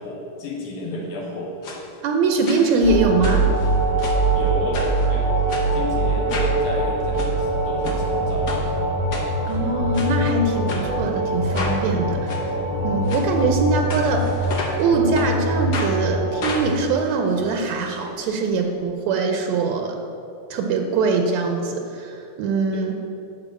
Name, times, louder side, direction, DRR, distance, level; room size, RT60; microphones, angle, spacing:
voice 1, 0.0-1.5 4.3-5.3 5.7-8.7 22.7-22.8, left 2 dB, 85° left, -2 dB, 3.1 m, -31 dB
sound 1, 1.6-1.8 2.5-2.9 3.2-4.3 4.7-5.1 5.5-5.7 6.3-6.6 7.0-7.3 7.8-8.0 8.5-8.6 9.1-9.6 9.9-10.1 10.7-10.8 11.5-11.8 12.3-12.4 13.0-13.2 13.9-14.8 15.1-15.3 15.7-15.9 16.4-17.9 18.2-18.3 18.6-18.7, left 2 dB, 60° left, 1.0 m, -31 dB
voice 2, 2.0-3.5 9.5-12.5 12.8-20.0 20.5-22.9, right 3 dB, 75° right, 3 dB, 1.9 m, -22 dB
sound 2, 2.8-16.6, right 2 dB, 30° left, 1.1 m, -23 dB
9.8 x 4.7 x 7.4 m, 2.7 s
omnidirectional pair, 3.3 m